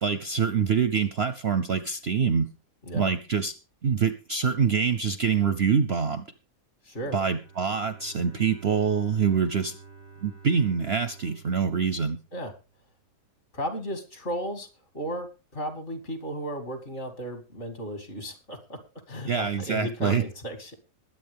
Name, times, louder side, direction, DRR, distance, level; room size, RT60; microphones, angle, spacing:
voice 1, 0.0-2.5 2.9-3.5 3.8-6.3 7.1-9.8 10.2-12.2 19.3-20.2, right 6 dB, 50° right, 12 dB, 0.8 m, -25 dB
voice 2, 6.8-7.2 12.3-12.5 13.5-14.7 14.9-18.8 19.1-20.7, equal, 45° left, 7 dB, 2.8 m, -34 dB
Bowed string instrument, 7.1-13.0, right 5 dB, 90° left, 4.8 m, -51 dB
21.0 x 9.0 x 3.5 m, 0.31 s
omnidirectional pair, 1.7 m